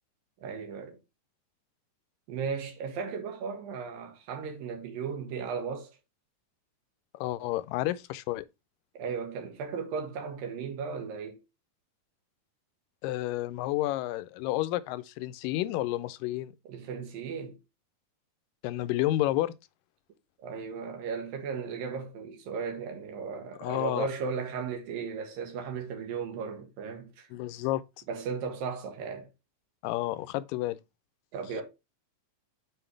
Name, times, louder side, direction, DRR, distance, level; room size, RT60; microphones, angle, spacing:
voice 1, 0.4-1.0 2.3-5.9 8.9-11.4 16.7-17.6 20.4-27.3 28.1-29.3 31.3-31.6, right 5 dB, 85° right, 3.3 m, -36 dB
voice 2, 7.1-8.4 13.0-16.5 18.6-19.5 23.6-24.1 27.3-27.8 29.8-30.8, left 15 dB, 85° left, 2.1 m, -30 dB
7.7 x 5.1 x 3.2 m
omnidirectional pair, 3.9 m